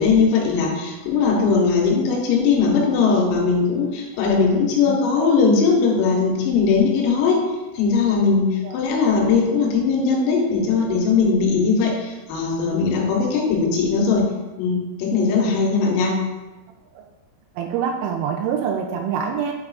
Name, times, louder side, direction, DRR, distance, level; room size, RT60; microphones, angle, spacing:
voice 1, 0.0-7.4 7.8-14.3 14.6-16.1, left 5 dB, 85° left, -1 dB, 3.6 m, -19 dB
voice 2, 4.9-5.3 8.6-8.7 15.4-15.5 17.0-17.1 17.6-19.5, right 7 dB, 85° right, 2 dB, 3.2 m, -26 dB
8.6 x 4.8 x 2.4 m, 1.1 s
omnidirectional pair, 5.9 m